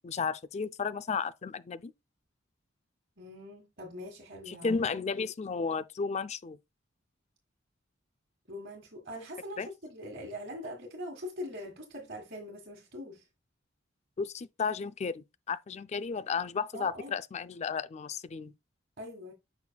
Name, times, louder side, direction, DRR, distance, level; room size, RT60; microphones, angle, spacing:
voice 1, 0.0-1.9 4.5-6.6 9.6-9.7 14.2-18.5, left 5 dB, 35° left, 0.4 m, -33 dB
voice 2, 3.2-4.8 8.5-13.2 16.7-17.2 19.0-19.3, left 1 dB, 55° right, 1.7 m, -42 dB
7.3 x 5.9 x 2.3 m
head